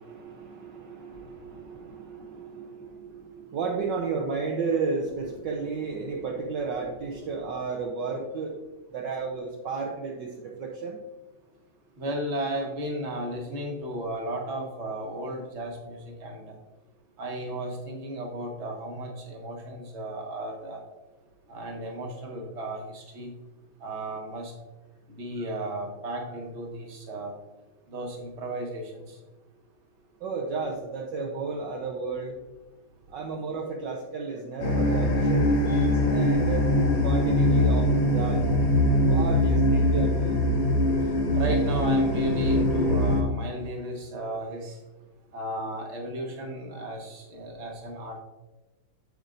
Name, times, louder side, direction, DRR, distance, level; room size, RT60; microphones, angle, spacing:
voice 1, 0.0-8.6 8.9-11.0 30.2-32.4 33.1-36.7 37.0-38.5 39.0-40.4, right 4 dB, 65° right, 0 dB, 1.3 m, -33 dB
voice 2, 12.0-16.5 17.2-20.8 21.5-23.3 23.8-24.5 25.1-27.3 27.9-29.2 35.7-35.9 41.3-44.8 45.3-48.2, right 1 dB, 35° right, 0 dB, 1.5 m, -34 dB
sound 1, 34.6-43.2, left 1 dB, 45° left, 0.9 m, -22 dB
8.1 x 7.3 x 2.5 m, 1.1 s
omnidirectional pair, 2.3 m